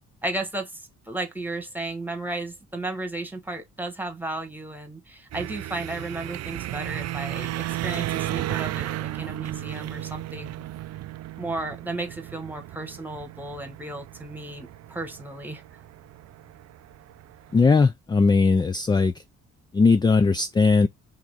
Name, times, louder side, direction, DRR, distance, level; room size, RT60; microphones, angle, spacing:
voice 1, 0.2-10.6 11.4-15.6, right 2 dB, 5° right, 1.3 m, -34 dB
sound 1, 5.3-17.8, right 15 dB, 60° right, 0.4 m, -34 dB
voice 2, 17.5-19.1 19.7-20.9, left 4 dB, 15° left, 0.3 m, -19 dB
3.7 x 3.0 x 4.8 m
cardioid pair, 90°, 30 cm